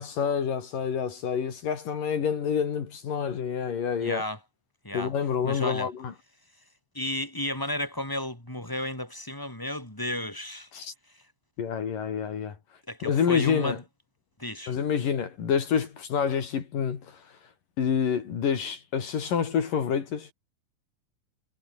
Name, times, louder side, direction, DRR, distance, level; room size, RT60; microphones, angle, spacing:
voice 1, 0.0-4.2 4.9-6.1 10.7-10.9 11.6-12.5 13.0-13.8 14.7-17.2 17.8-20.3, left 7 dB, 70° left, 4.5 m, -28 dB
voice 2, 4.0-4.4 4.8-5.1 5.4-5.9 6.9-10.7 12.9-13.8 14.4-14.7, left 1 dB, 5° left, 4.1 m, -33 dB
omnidirectional pair, 4.1 m